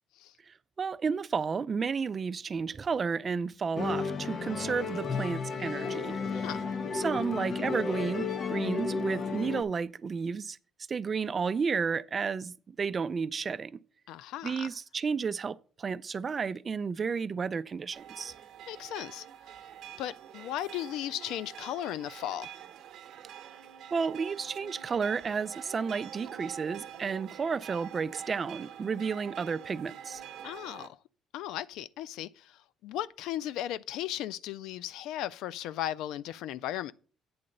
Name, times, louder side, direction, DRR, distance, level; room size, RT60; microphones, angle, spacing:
voice 1, 0.5-6.5 6.9-10.6 10.9-13.7 14.4-18.3 23.9-30.2, right 5 dB, 30° right, 0.3 m, -32 dB
Musical instrument, 3.8-9.6, left 5 dB, 50° left, 0.8 m, -33 dB
voice 2, 14.1-14.7 18.7-19.3 20.0-22.5 30.4-31.0 31.3-36.9, left 12 dB, 85° left, 0.3 m, -36 dB
sound 1, 17.9-30.9, right 9 dB, 65° right, 0.8 m, -46 dB
8.6 x 3.9 x 6.5 m
cardioid pair, 120°, 0 cm